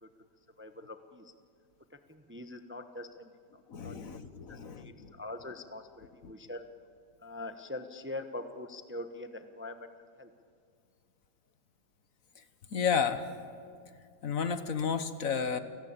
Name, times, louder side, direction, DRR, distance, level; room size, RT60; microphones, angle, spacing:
voice 1, 0.6-1.3 1.9-3.4 3.8-4.0 4.5-6.7 7.2-9.9 10.2-10.3, left 2 dB, 10° right, 8 dB, 0.8 m, -43 dB
voice 2, 3.7-5.1 12.7-13.2 14.2-15.6, left 6 dB, 55° left, 10 dB, 1.5 m, -32 dB
30.0 x 18.5 x 8.8 m, 2.3 s
omnidirectional pair, 1.7 m